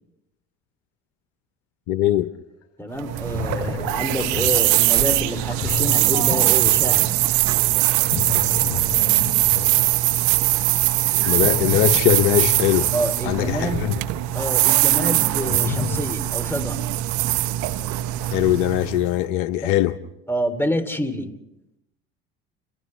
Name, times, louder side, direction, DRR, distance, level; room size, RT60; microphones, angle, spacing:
voice 1, 1.9-2.3 11.3-12.9 13.2-13.9 18.2-20.0, left 14 dB, 65° left, 0.9 m, -21 dB
sound 1, 2.6-2.7 3.1-13.7 15.0-16.0, left 9 dB, 50° left, 6.0 m, -32 dB
voice 2, 2.8-7.1 12.9-13.8 14.3-16.8 19.6-19.7 20.3-21.3, equal, 5° left, 3.0 m, -27 dB
sound 2, 3.0-19.1, right 17 dB, 70° right, 1.0 m, -21 dB
30.0 x 27.5 x 3.3 m
hypercardioid pair, 70°, 32 cm